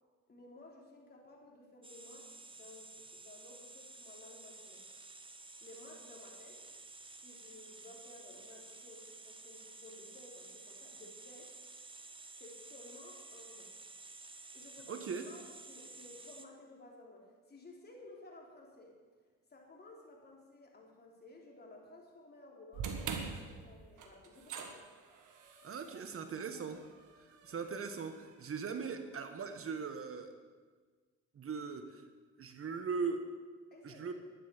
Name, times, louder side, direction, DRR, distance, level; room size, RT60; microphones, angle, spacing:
voice 1, 0.3-4.8 5.6-6.7 7.2-11.6 12.4-13.7 14.5-19.0 19.5-24.7 33.7-34.1, left 2 dB, 30° left, -1 dB, 3.5 m, -55 dB
sound 1, 1.8-16.5, right 3 dB, 15° right, 1.1 m, -52 dB
voice 2, 14.9-15.2 25.6-26.8 27.2-30.3 31.3-32.0 32.4-33.3 33.8-34.1, right 5 dB, 45° right, 7 dB, 1.2 m, -39 dB
sound 2, 22.7-29.0, right 6 dB, 85° right, 1.7 m, -45 dB
11.5 x 10.0 x 7.1 m, 1.5 s
cardioid pair, 90°, 30 cm